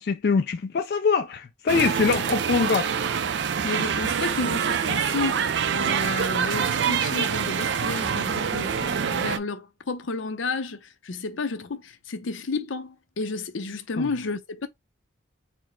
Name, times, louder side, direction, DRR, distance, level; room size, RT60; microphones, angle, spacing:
voice 1, 0.0-2.9, left 5 dB, 55° left, 0.3 m, -23 dB
sound 1, 1.7-9.4, right 7 dB, 65° right, 0.4 m, -25 dB
voice 2, 3.6-5.4 5.7-14.7, left 3 dB, 85° left, 0.6 m, -31 dB
4.3 x 2.1 x 4.3 m
head